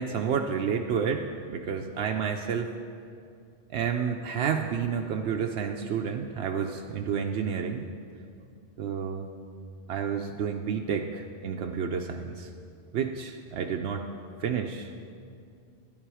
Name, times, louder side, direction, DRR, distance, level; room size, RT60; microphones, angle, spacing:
voice 1, 0.0-2.7 3.7-7.9 8.8-9.3 9.9-12.5 12.9-14.0 14.4-15.0, right 7 dB, 85° right, 3 dB, 0.9 m, -30 dB
11.0 x 10.5 x 4.8 m, 2.4 s
omnidirectional pair, 1.1 m